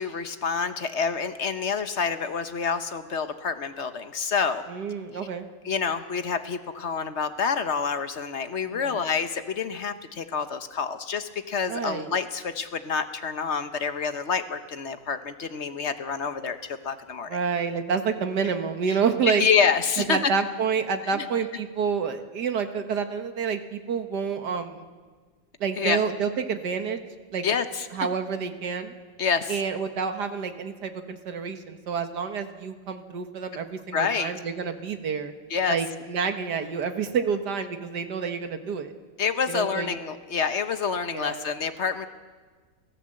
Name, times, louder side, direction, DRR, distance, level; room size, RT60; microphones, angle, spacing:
voice 1, 0.0-4.6 5.6-17.4 19.3-20.3 21.1-21.2 25.8-26.0 27.4-27.9 29.2-29.6 33.9-34.3 35.5-35.8 39.2-42.1, left 6 dB, 45° left, 9 dB, 1.2 m, -27 dB
voice 2, 4.7-5.5 8.7-9.0 11.7-12.1 17.3-19.4 20.0-24.9 25.6-27.0 27.3-27.5 27.9-28.9 29.5-35.3 35.7-38.9 39.5-39.9 41.1-41.5, right 6 dB, 70° right, 7 dB, 2.1 m, -28 dB
30.0 x 14.0 x 7.7 m, 1.4 s
omnidirectional pair, 1.9 m